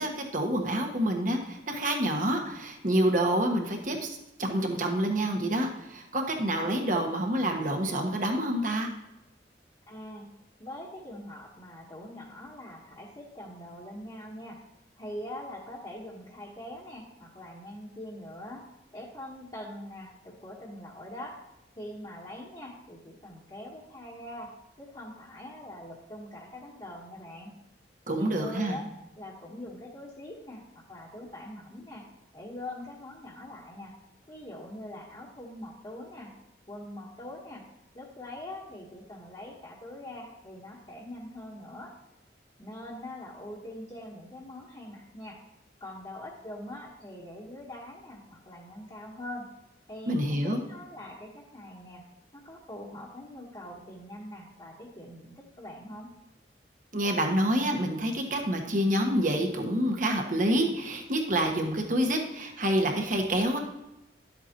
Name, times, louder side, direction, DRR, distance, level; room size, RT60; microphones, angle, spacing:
voice 1, 0.0-8.9 28.1-28.8 50.1-50.6 56.9-63.6, right 1 dB, 45° right, 3 dB, 1.4 m, -27 dB
voice 2, 9.9-10.3 10.6-14.6 15.0-18.7 18.9-21.4 21.8-27.6 28.1-28.8 29.2-33.9 34.3-36.3 36.7-37.6 37.9-41.9 42.6-45.4 45.8-49.5 49.9-52.0 52.3-56.1, left 1 dB, 25° left, -7 dB, 1.3 m, -43 dB
12.0 x 8.1 x 3.0 m, 0.94 s
head